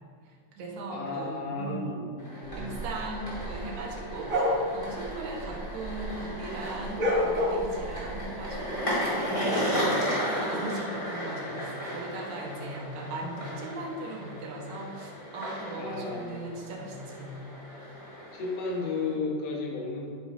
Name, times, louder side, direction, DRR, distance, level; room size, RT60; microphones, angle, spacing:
voice 1, 0.3-2.0 2.6-17.3, right 2 dB, 65° right, 0 dB, 2.3 m, -38 dB
voice 2, 0.9-2.8 15.8-16.7 18.3-20.1, left 3 dB, 55° left, -1 dB, 2.1 m, -33 dB
sound 1, 2.2-19.1, equal, 10° left, 1.7 m, -35 dB
sound 2, 2.5-6.2 6.5-8.5, left 1 dB, 85° right, 0.7 m, -30 dB
10.5 x 4.9 x 4.9 m, 2.1 s
omnidirectional pair, 4.0 m